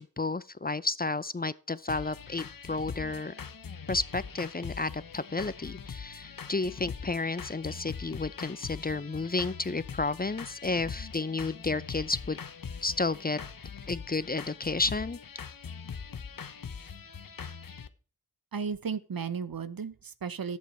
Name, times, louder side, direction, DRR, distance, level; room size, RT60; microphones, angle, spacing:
voice 1, 0.0-3.3 3.9-12.4 12.8-13.4 13.9-15.2, left 3 dB, 25° left, 0.5 m, -32 dB
sound 1, 1.9-17.9, left 6 dB, 65° left, 0.9 m, -42 dB
voice 2, 18.5-20.6, right 6 dB, 70° right, 0.9 m, -34 dB
11.0 x 8.5 x 4.4 m
cardioid pair, 45°, 36 cm